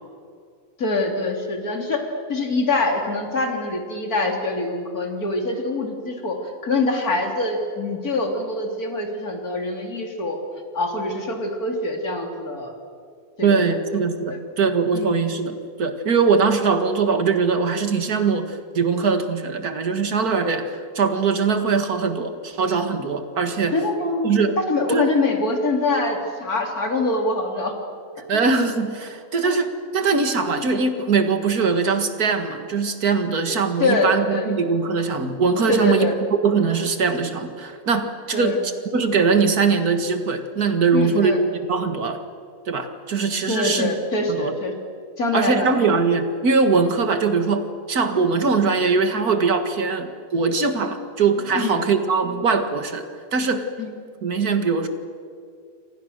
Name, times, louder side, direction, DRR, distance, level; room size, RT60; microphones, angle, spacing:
voice 1, 0.8-6.4 6.6-10.4 10.7-12.7 13.4-13.6 14.3-14.4 14.9-15.2 23.7-27.7 28.3-28.5 33.8-34.6 35.7-36.1 38.3-38.6 40.9-41.4 43.5-44.7 45.2-45.7 51.5-51.8 53.8-53.9, left 2 dB, 80° left, 2 dB, 3.8 m, -24 dB
voice 2, 13.4-23.8 24.2-24.6 24.9-25.1 28.3-36.1 36.4-42.2 42.7-43.9 44.3-44.6 45.3-53.0 53.3-53.7 54.2-54.9, right 4 dB, 85° right, 7 dB, 2.3 m, -21 dB
28.0 x 25.5 x 6.6 m, 2.3 s
omnidirectional pair, 1.6 m